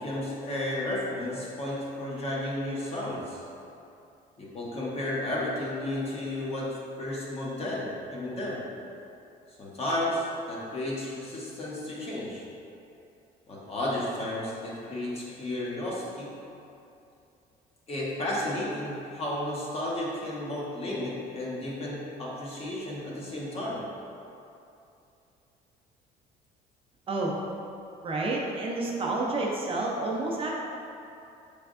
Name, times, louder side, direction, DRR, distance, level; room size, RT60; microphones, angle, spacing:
voice 1, 0.0-3.4 4.4-8.7 9.6-12.4 13.5-16.3 17.9-23.8, left 1 dB, 35° left, -5 dB, 1.0 m, -33 dB
voice 2, 27.1-27.4 28.0-30.6, right 2 dB, 35° right, -3 dB, 0.6 m, -29 dB
5.2 x 3.3 x 2.4 m, 2.7 s
cardioid pair, 110°, 17 cm